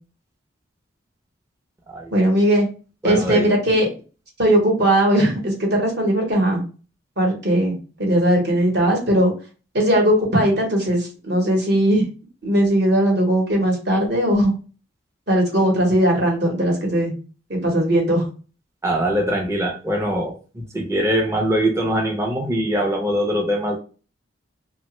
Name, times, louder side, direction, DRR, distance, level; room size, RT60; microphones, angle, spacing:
voice 1, 2.1-2.7 3.0-3.9 4.4-6.6 7.2-9.3 9.7-12.1 12.4-14.5 15.3-17.1 17.5-18.2, right 1 dB, 55° right, 0 dB, 0.9 m, -19 dB
voice 2, 3.0-3.5 18.8-23.8, equal, 15° right, 1 dB, 0.4 m, -22 dB
2.8 x 2.1 x 2.9 m, 0.35 s
head